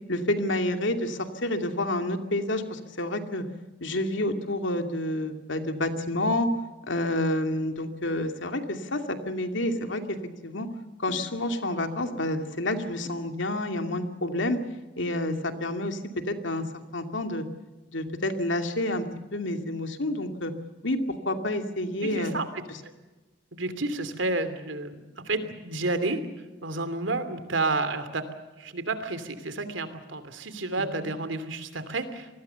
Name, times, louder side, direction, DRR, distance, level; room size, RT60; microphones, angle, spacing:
voice 1, 0.1-3.4 3.8-6.5 6.9-10.2 10.4-10.7 11.0-14.6 15.0-17.4 17.9-19.1 19.3-20.5 20.8-22.3, left 1 dB, 80° left, 6 dB, 2.6 m, -29 dB
voice 2, 22.0-22.5 22.8-22.9 23.5-26.2 26.6-28.2 28.6-32.3, right 2 dB, 85° right, 11 dB, 2.9 m, -30 dB
27.5 x 20.0 x 7.1 m, 1.2 s
head